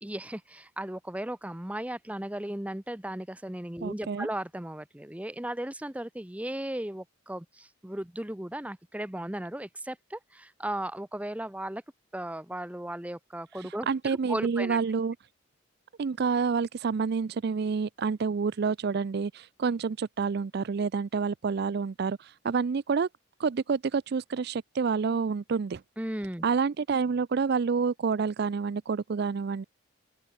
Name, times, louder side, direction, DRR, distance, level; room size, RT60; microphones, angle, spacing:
voice 1, 0.0-11.8 12.1-14.8 26.0-26.4, right 1 dB, 5° right, 0.7 m, -36 dB
voice 2, 3.8-4.3 13.6-15.2 16.0-23.1 23.4-25.8 26.4-29.6, right 5 dB, 50° right, 0.4 m, -28 dB
open air
head